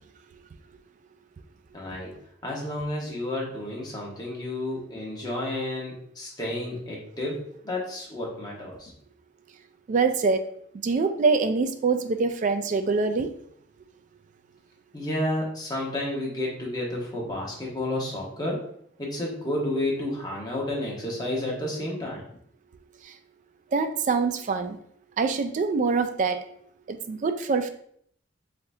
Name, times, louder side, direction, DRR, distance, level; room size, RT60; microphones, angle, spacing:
voice 1, 1.7-2.1 2.4-8.9 14.9-18.6 19.0-22.2, left 1 dB, 20° left, -3 dB, 1.1 m, -31 dB
voice 2, 9.9-10.4 10.8-13.3 23.0-23.1 23.7-24.8 25.2-26.4 26.9-27.7, right 4 dB, 45° right, 8 dB, 0.3 m, -24 dB
3.8 x 3.4 x 2.6 m, 0.66 s
head